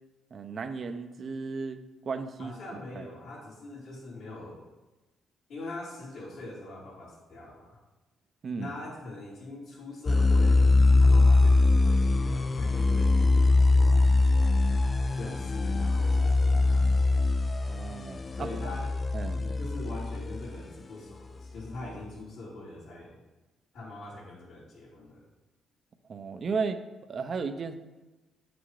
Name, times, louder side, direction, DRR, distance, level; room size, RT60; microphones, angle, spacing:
voice 1, 0.3-2.5 2.9-3.1 8.4-8.7 17.7-18.7 19.1-19.4 26.1-26.8 27.1-27.7, right 5 dB, 50° right, 8 dB, 0.7 m, -34 dB
voice 2, 2.4-4.6 5.5-7.8 8.6-14.1 15.1-17.2 18.3-18.9 19.3-23.2 23.7-25.3, left 2 dB, 70° left, -8 dB, 3.1 m, -42 dB
sound 1, 10.1-20.6, left 3 dB, 30° left, 0.5 m, -22 dB
8.9 x 6.1 x 4.8 m, 1.1 s
cardioid pair, 90°, 0 cm